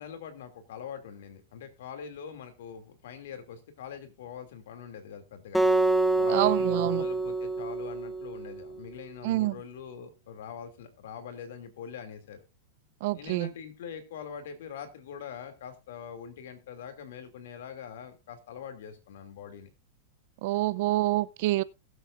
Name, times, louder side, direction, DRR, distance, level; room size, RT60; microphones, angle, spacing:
voice 1, 0.0-5.6 6.1-12.4 13.1-19.7, left 7 dB, 75° left, 2.6 m, -43 dB
Acoustic guitar, 5.5-8.8, right 2 dB, ahead, 1.2 m, -27 dB
voice 2, 6.3-7.1 9.2-9.6 13.0-13.5 20.4-21.6, right 17 dB, 60° right, 0.5 m, -27 dB
20.0 x 8.0 x 2.6 m
supercardioid pair, 135°, 0 cm